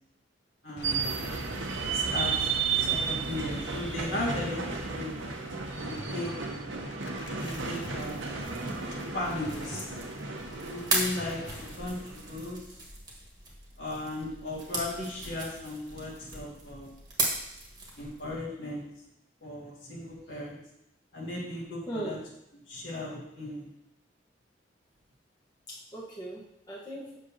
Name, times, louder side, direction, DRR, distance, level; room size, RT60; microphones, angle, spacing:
voice 1, 0.6-1.3 1.9-5.2 5.9-6.4 7.4-8.3 9.1-9.9 10.6-12.6 13.8-16.9 18.0-18.8 19.4-20.6 21.1-22.2 22.7-23.7, left 1 dB, 75° left, -4 dB, 2.0 m, -36 dB
Gunshot gunfire, 0.8-8.6 8.8-12.2, left 2 dB, 60° left, 0.8 m, -46 dB
sound 1, 0.8-12.4, right 5 dB, 80° right, 0.9 m, -33 dB
voice 2, 2.8-3.4 3.8-4.0 20.2-20.4 21.9-22.2 25.7-27.2, right 1 dB, 20° left, -8 dB, 1.2 m, -41 dB
sound 2, 7.2-18.3, right 2 dB, 20° right, 1.4 m, -37 dB
7.7 x 6.5 x 2.9 m, 0.84 s
head